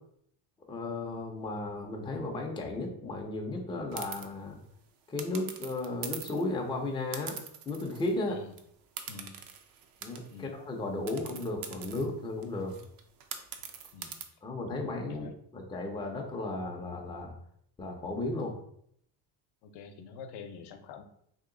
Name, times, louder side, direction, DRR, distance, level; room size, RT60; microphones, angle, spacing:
voice 1, 0.7-4.6 5.1-7.4 7.7-8.4 10.0-12.8 14.4-17.3 17.8-18.6, left 2 dB, 10° left, 1 dB, 0.4 m, -35 dB
sound 1, 3.9-4.3 5.2-6.5 7.1-8.2 8.5-8.6 9.0-10.4 11.1-14.2, right 7 dB, 55° right, 0.5 m, -43 dB
voice 2, 19.6-21.0, left 5 dB, 75° left, 7 dB, 0.7 m, -46 dB
3.0 x 2.9 x 3.7 m, 0.69 s
cardioid pair, 150°, 40 cm